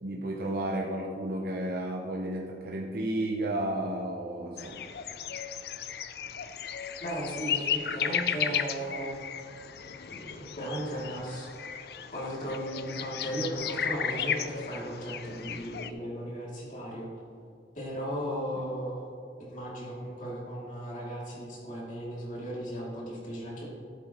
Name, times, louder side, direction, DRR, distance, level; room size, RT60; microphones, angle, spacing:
voice 1, 0.0-4.9, right 1 dB, 55° right, 1 dB, 0.7 m, -32 dB
sound 1, 4.6-15.9, left 8 dB, 60° left, 0.4 m, -35 dB
voice 2, 7.0-9.3 10.0-11.5 12.1-17.1 17.7-19.1 19.4-23.7, equal, 45° left, -4 dB, 2.6 m, -36 dB
14.0 x 7.7 x 3.0 m, 2.3 s
head